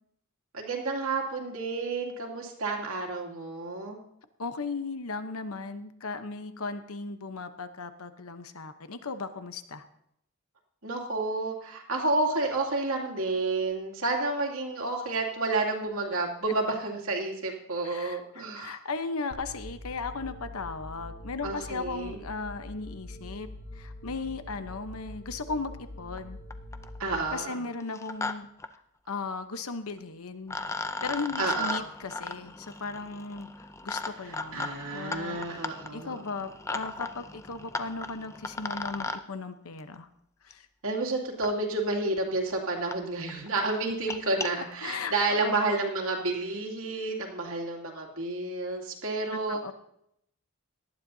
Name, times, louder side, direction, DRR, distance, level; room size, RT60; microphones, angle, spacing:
voice 1, 0.5-4.0 10.8-18.8 21.4-22.2 27.0-27.6 31.4-31.9 34.2-36.2 40.8-49.6, right 3 dB, 70° right, 0 dB, 2.6 m, -30 dB
voice 2, 4.4-9.8 17.8-23.5 23.7-25.7 26.0-26.4 27.3-28.5 29.1-30.6 31.0-33.5 33.8-40.1 40.4-40.7 44.8-45.7 49.3-49.7, left 4 dB, 75° left, 9 dB, 0.9 m, -36 dB
sound 1, 19.3-28.3, left 1 dB, 40° left, 1.1 m, -44 dB
sound 2, 26.2-26.3 26.5-27.0 27.8-28.3 28.6-28.7 30.0-30.1 30.5-39.2 40.5-40.6 41.4-41.5 42.2-42.3 42.5-42.6 42.9-43.0 43.3-43.5 43.9-44.5, left 3 dB, 15° left, 0.5 m, -36 dB
18.5 x 12.0 x 2.8 m, 0.75 s
head